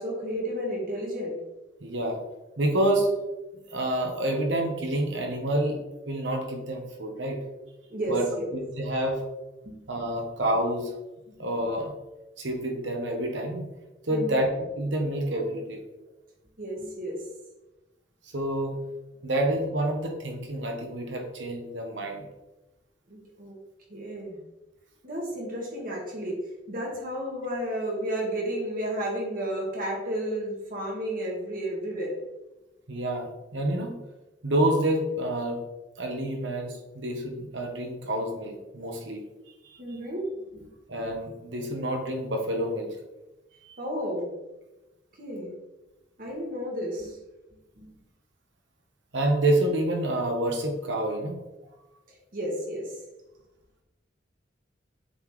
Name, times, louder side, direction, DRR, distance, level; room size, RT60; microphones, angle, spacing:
voice 1, 0.0-1.4 7.9-8.5 9.6-9.9 14.1-14.4 16.6-17.2 23.1-23.5 23.9-24.4 25.0-26.4 26.7-32.2 39.8-40.3 40.5-40.7 43.8-44.3 45.2-45.5 46.2-47.2 47.8-47.9 52.3-52.9, equal, 50° right, -1 dB, 1.7 m, -32 dB
voice 2, 1.8-2.2 2.6-3.1 3.7-5.8 6.1-7.4 8.1-8.2 8.5-9.2 9.9-10.9 11.4-11.9 12.4-13.7 14.1-14.5 14.8-15.8 18.3-18.8 19.2-22.3 32.9-34.0 34.4-35.6 36.0-39.2 39.5-39.8 40.9-43.0 43.6-43.8 49.1-51.4, right 1 dB, 80° right, 2 dB, 1.2 m, -28 dB
7.5 x 4.0 x 3.2 m, 1.0 s
head